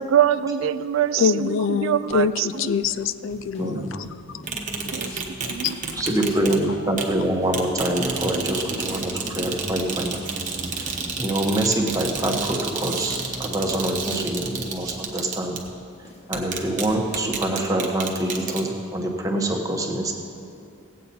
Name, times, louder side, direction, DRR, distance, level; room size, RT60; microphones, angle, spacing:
voice 1, 0.0-2.5 4.9-5.1 5.4-5.8, right 10 dB, 75° right, 14 dB, 0.3 m, -23 dB
voice 2, 1.2-4.1 5.0-5.5, left 6 dB, 65° left, 14 dB, 0.3 m, -25 dB
sound 1, 2.1-7.6 7.9-8.9 9.1-16.6 16.8-17.3, left 1 dB, 30° left, 1.3 m, -47 dB
voice 3, 3.6-4.0 5.0-5.2 5.9-10.3 10.7-15.6 16.3-20.1, right 1 dB, 15° right, 1 dB, 1.0 m, -25 dB
sound 2, 4.5-6.6 7.0-7.1 7.5-15.7 16.3-16.9 17.1-18.6, right 4 dB, 35° right, 1.1 m, -30 dB
16.5 x 8.4 x 4.2 m, 2.6 s
head